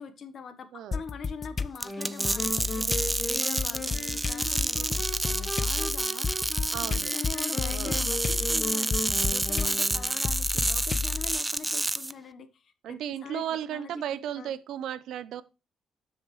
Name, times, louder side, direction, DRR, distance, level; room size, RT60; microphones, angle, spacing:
voice 1, 0.0-14.5, left 5 dB, 50° left, 1.3 m, -43 dB
voice 2, 0.7-1.0 6.7-7.1 7.7-8.0 12.8-15.4, right 10 dB, 80° right, 0.7 m, -35 dB
sound 1, 0.9-1.8 2.2-11.4, left 5 dB, 35° left, 0.6 m, -32 dB
sound 2, 1.8-10.3, left 1 dB, 15° left, 3.1 m, -37 dB
sound 3, 1.8-12.1, right 2 dB, 15° right, 0.4 m, -29 dB
12.5 x 6.4 x 3.2 m
cardioid pair, 125°, 0 cm